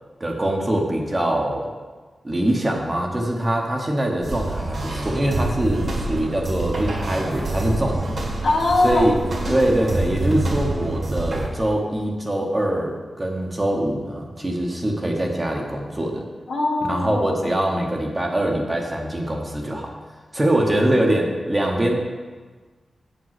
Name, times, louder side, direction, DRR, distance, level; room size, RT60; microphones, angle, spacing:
voice 1, 0.2-1.7 2.2-8.1 8.8-9.2 9.5-16.3 16.8-19.9 20.3-22.0, right 1 dB, 20° right, 1 dB, 1.0 m, -23 dB
sound 1, 4.2-11.5, right 2 dB, 55° right, 1.9 m, -26 dB
voice 2, 8.4-9.7 16.5-17.5, left 2 dB, 65° left, 0 dB, 1.3 m, -22 dB
8.5 x 5.2 x 5.8 m, 1.4 s
wide cardioid pair, 160°, 0 cm